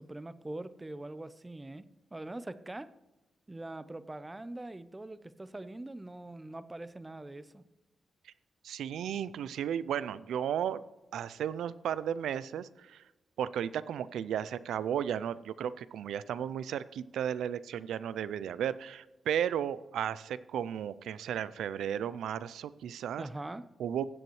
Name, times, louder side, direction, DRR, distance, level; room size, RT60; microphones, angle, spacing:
voice 1, 0.0-1.8 2.1-2.9 3.5-7.6 23.2-23.7, right 2 dB, 20° right, 14 dB, 0.7 m, -43 dB
voice 2, 8.6-10.8 11.1-13.0 13.4-23.2 23.8-24.0, right 9 dB, 85° right, 17 dB, 0.4 m, -34 dB
16.0 x 7.8 x 3.1 m, 1.1 s
cardioid pair, 55°, 0 cm